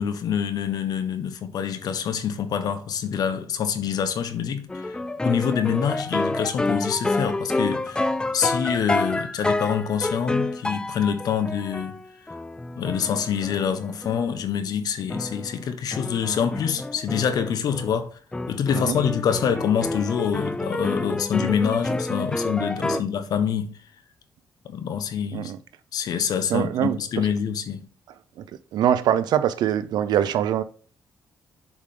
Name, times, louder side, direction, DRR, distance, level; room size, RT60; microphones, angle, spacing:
voice 1, 0.0-4.9 5.2-8.1 8.3-12.0 12.8-18.2 18.5-23.7 24.6-25.5 25.9-27.8, left 8 dB, 65° left, 1.2 m, -26 dB
sound 1, 4.7-14.4 15.1-18.0 18.3-23.0, left 2 dB, 10° left, 0.4 m, -29 dB
voice 2, 26.5-27.0 28.7-30.6, right 10 dB, 80° right, 0.6 m, -23 dB
7.2 x 4.8 x 3.8 m
cardioid pair, 115°, 7 cm